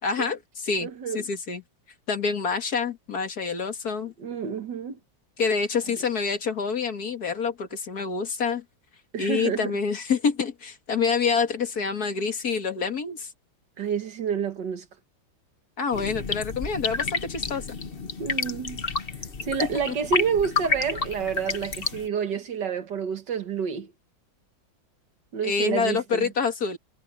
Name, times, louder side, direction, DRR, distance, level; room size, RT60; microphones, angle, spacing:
voice 1, 0.0-0.9 1.1-1.6 2.1-4.1 5.4-8.6 9.2-13.3 15.8-17.7 25.4-26.8, left 5 dB, 55° left, 2.2 m, -27 dB
voice 2, 0.8-1.3 4.2-5.0 9.1-9.7 13.8-14.9 18.2-18.8 19.4-23.9 25.3-26.3, right 7 dB, 65° right, 2.1 m, -29 dB
sound 1, 15.9-22.1, left 4 dB, 35° left, 1.3 m, -30 dB
omnidirectional pair, 2.1 m